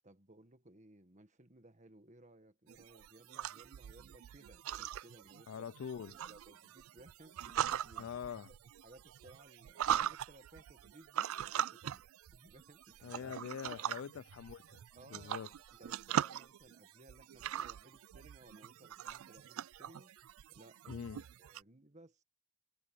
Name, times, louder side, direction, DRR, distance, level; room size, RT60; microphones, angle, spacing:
voice 1, 0.0-8.1 8.8-13.3 13.7-13.9 14.9-20.1 20.5-22.2, right 1 dB, 35° right, 1.6 m, -60 dB
sound 1, 2.7-21.6, right 10 dB, 70° right, 0.3 m, -41 dB
voice 2, 5.5-6.2 8.0-8.5 13.0-14.8 15.1-15.5 20.9-21.2, left 7 dB, 60° left, 0.3 m, -44 dB
head